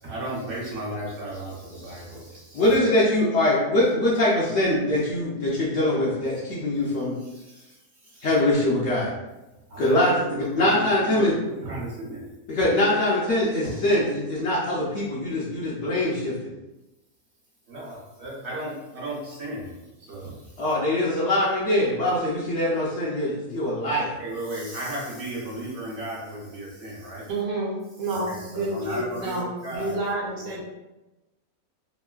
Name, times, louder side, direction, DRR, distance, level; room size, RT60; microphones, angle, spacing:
voice 1, 0.0-2.8 7.2-7.7 8.0-8.3 9.7-12.3 13.6-13.7 17.7-19.7 20.0-20.5 24.2-27.3 28.1-30.0, right 1 dB, 55° right, -5 dB, 0.8 m, -35 dB
voice 2, 2.5-7.1 8.2-9.1 9.8-11.3 12.5-16.3 20.6-24.1, left 1 dB, 60° left, -6 dB, 0.7 m, -23 dB
voice 3, 27.3-30.6, right 2 dB, 70° right, -5 dB, 1.2 m, -29 dB
3.0 x 2.5 x 2.3 m, 1.0 s
omnidirectional pair, 1.6 m